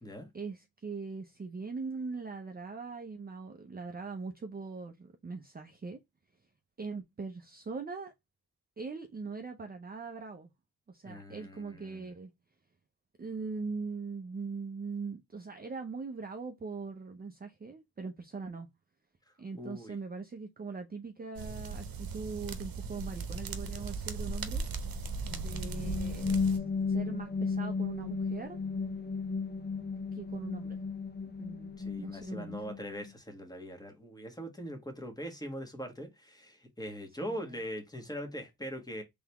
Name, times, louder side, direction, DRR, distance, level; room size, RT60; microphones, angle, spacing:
voice 1, 0.3-6.0 6.8-8.1 8.8-10.5 10.9-12.3 13.2-18.7 19.4-24.6 25.3-28.6 30.1-30.8 31.4-32.6 37.2-37.6, right 4 dB, 25° right, 0.5 m, -41 dB
voice 2, 11.0-12.1 19.5-20.0 31.8-39.0, equal, 10° left, 1.4 m, -41 dB
sound 1, 21.4-26.6, right 4 dB, 70° right, 0.8 m, -38 dB
sound 2, 25.3-33.1, left 5 dB, 30° left, 0.5 m, -34 dB
3.9 x 3.4 x 2.9 m
wide cardioid pair, 105°, 36 cm